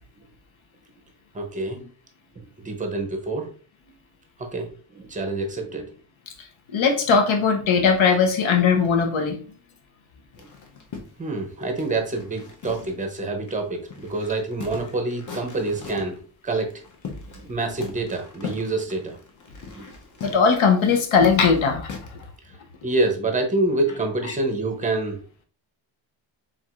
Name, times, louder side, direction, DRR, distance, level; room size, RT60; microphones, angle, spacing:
voice 1, 1.3-1.8 2.4-3.5 4.4-5.9 10.4-10.5 11.2-16.8 17.3-19.2 19.8-19.9 22.8-25.2, right 2 dB, 15° right, 4 dB, 0.6 m, -27 dB
voice 2, 6.7-9.4 20.2-22.0, left 5 dB, 80° left, 5 dB, 0.9 m, -19 dB
sound 1, 10.3-13.2 13.5-13.6 13.9-16.2 16.7-17.5 17.8-22.3, left 5 dB, 40° left, 0.7 m, -39 dB
4.6 x 3.7 x 2.4 m, 0.40 s
wide cardioid pair, 170°, 47 cm